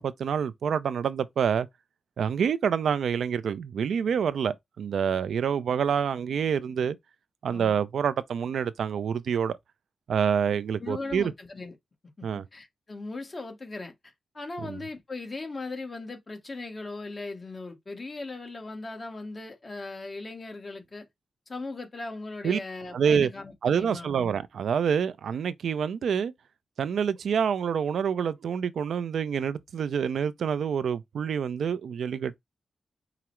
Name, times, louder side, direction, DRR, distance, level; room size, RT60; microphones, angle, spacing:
voice 1, 0.0-1.7 2.2-7.0 7.4-9.6 10.1-11.3 12.2-12.4 14.6-14.8 22.4-22.6 22.9-23.3 23.6-26.3 26.8-32.4, right 7 dB, 85° right, 0.4 m, -27 dB
voice 2, 7.5-7.8 10.8-11.8 12.2-13.9 14.3-21.1 21.5-24.1, left 3 dB, 35° left, 1.1 m, -38 dB
4.8 x 2.0 x 4.3 m
wide cardioid pair, 105°, 0 cm